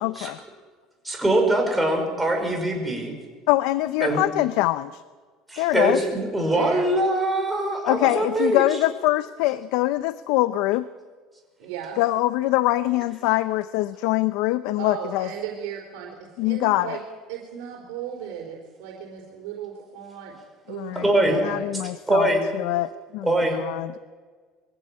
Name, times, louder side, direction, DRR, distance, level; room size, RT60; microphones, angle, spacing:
voice 1, 0.0-0.4 3.5-5.0 5.6-6.0 7.9-10.9 12.0-15.3 16.4-17.0 20.7-21.1 21.4-24.0, left 17 dB, 75° left, 14 dB, 0.6 m, -24 dB
voice 2, 1.0-3.1 4.0-4.2 5.5-8.6 21.0-21.4 22.1-22.4 23.2-23.6, right 1 dB, 5° right, 2 dB, 5.2 m, -22 dB
voice 3, 6.5-6.9 11.6-12.0 14.8-17.0 17.3-20.3 20.7-21.7, right 9 dB, 85° right, 0 dB, 4.0 m, -36 dB
23.0 x 15.5 x 8.7 m, 1.5 s
cardioid pair, 140°, 0 cm